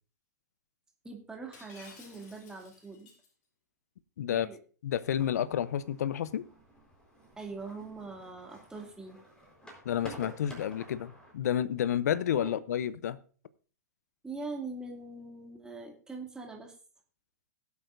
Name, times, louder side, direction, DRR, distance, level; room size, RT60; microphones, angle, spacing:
voice 1, 1.0-3.1 4.3-4.6 7.4-9.2 12.4-12.5 14.2-16.8, right 3 dB, 5° right, 2.5 m, -42 dB
Shatter, 1.5-3.3, left 4 dB, 50° left, 5.7 m, -54 dB
voice 2, 4.8-6.4 9.8-13.2, left 10 dB, 65° left, 0.7 m, -30 dB
sound 1, 5.0-11.3, equal, 10° left, 4.2 m, -51 dB
20.0 x 8.1 x 2.6 m
hypercardioid pair, 115°, 9 cm